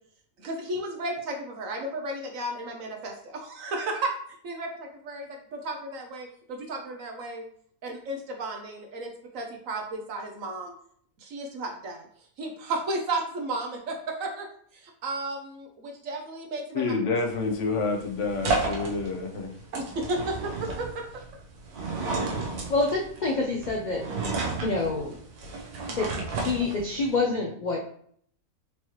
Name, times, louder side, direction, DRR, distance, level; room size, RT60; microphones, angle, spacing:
voice 1, 0.4-4.1 4.4-7.5 7.8-10.7 11.2-12.1 12.4-14.5 15.0-16.9 19.7-20.2 20.8-21.2, right 2 dB, 65° right, 2 dB, 1.1 m, -33 dB
voice 2, 16.7-19.5, left 4 dB, 60° left, 3 dB, 1.0 m, -28 dB
sound 1, 17.3-27.2, right 3 dB, 85° right, 1.4 m, -33 dB
voice 3, 22.7-24.0 24.6-25.2 26.0-27.8, left 3 dB, 85° left, 0 dB, 0.4 m, -27 dB
4.7 x 3.0 x 2.9 m, 0.62 s
omnidirectional pair, 1.6 m